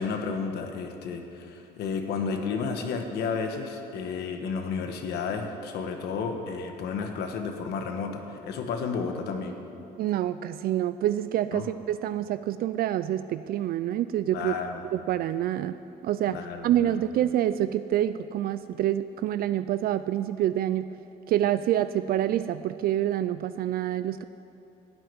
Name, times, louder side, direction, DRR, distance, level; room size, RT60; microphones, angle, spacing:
voice 1, 0.0-9.6 11.5-11.7 14.3-14.8 16.3-17.0, left 5 dB, 75° left, 5 dB, 1.4 m, -32 dB
voice 2, 10.0-14.5 14.9-15.8 16.0-16.4 16.6-20.9 21.3-24.2, right 12 dB, 60° right, 12 dB, 0.4 m, -27 dB
12.5 x 7.9 x 9.6 m, 2.8 s
cardioid pair, 110°, 17 cm